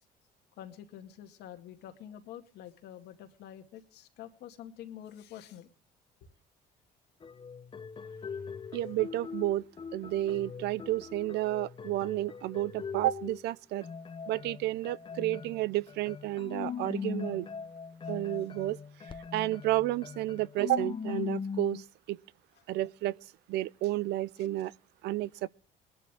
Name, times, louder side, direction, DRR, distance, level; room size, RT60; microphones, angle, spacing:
voice 1, 0.6-5.7, left 10 dB, 80° left, 2.1 m, -47 dB
sound 1, 7.2-13.5 13.8-21.8, left 6 dB, 30° left, 0.8 m, -40 dB
voice 2, 8.7-9.6 9.9-13.9 14.3-17.5 18.1-18.8 19.3-22.2 22.7-23.2 23.5-24.7 25.0-25.5, right 15 dB, 80° right, 0.5 m, -31 dB
21.0 x 11.5 x 3.4 m
cardioid pair, 110°, 17 cm